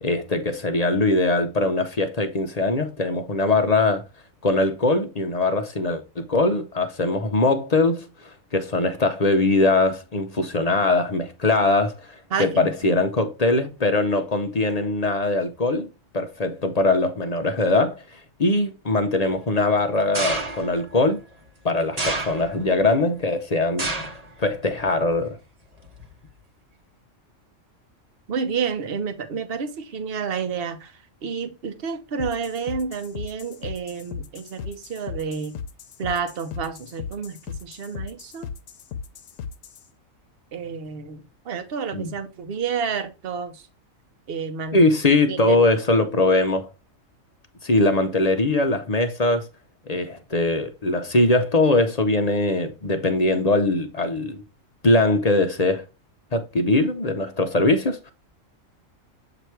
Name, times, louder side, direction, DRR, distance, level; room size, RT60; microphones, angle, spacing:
voice 1, 0.0-4.0 4.4-15.9 16.1-21.2 21.6-23.9 24.4-25.4 41.9-42.1 44.7-46.7 47.6-49.5 49.9-54.4 54.8-55.8 56.3-58.1, left 2 dB, 40° left, 0.6 m, -21 dB
voice 2, 12.3-13.0 28.3-30.9 31.2-35.5 36.0-38.5 40.5-43.7 44.3-44.8 45.3-45.6, right 6 dB, 50° right, 1.0 m, -30 dB
sound 1, 20.1-20.8 22.0-22.7 23.8-24.3 24.7-25.2 26.0-26.1, right 2 dB, 30° right, 1.2 m, -28 dB
sound 2, 32.2-39.9, left 6 dB, 75° left, 1.1 m, -37 dB
7.8 x 2.9 x 4.5 m
omnidirectional pair, 1.4 m